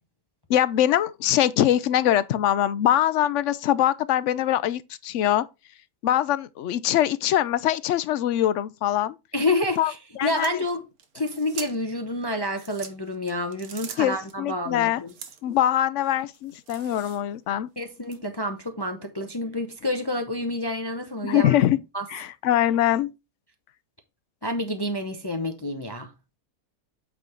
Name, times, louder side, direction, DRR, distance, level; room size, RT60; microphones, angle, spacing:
voice 1, 0.5-5.4 6.0-9.2 9.8-9.9 10.2-10.5 14.0-15.0 15.4-17.7 21.2-21.8 22.1-23.1, left 12 dB, 65° left, 0.8 m, -23 dB
voice 2, 9.3-10.0 10.2-10.8 11.1-15.1 17.8-21.5 21.9-22.0 24.4-26.1, left 1 dB, 25° left, 0.6 m, -28 dB
sound 1, 10.2-12.0 12.5-14.3 15.1-15.6 16.0-17.4 18.0-18.2, right 7 dB, 80° right, 1.5 m, -42 dB
8.4 x 3.9 x 4.4 m
omnidirectional pair, 1.5 m